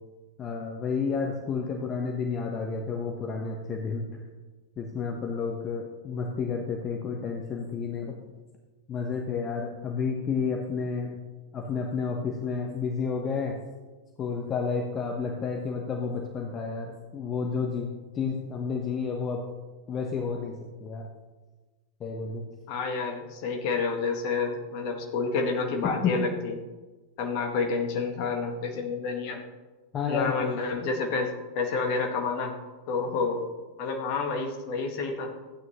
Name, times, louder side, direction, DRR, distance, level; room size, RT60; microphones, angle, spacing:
voice 1, 0.4-4.1 4.8-8.2 8.9-11.2 11.5-13.6 14.2-19.5 19.9-21.1 22.0-22.4 25.8-26.2 29.9-30.4, left 5 dB, 25° left, 2 dB, 1.1 m, -31 dB
voice 2, 22.7-26.5 27.2-29.4 30.1-31.3 31.6-32.5 32.9-33.4 33.8-35.3, left 4 dB, 45° left, 3 dB, 1.8 m, -29 dB
14.5 x 9.3 x 3.1 m, 1.3 s
figure-of-eight pair, 90°, 0 cm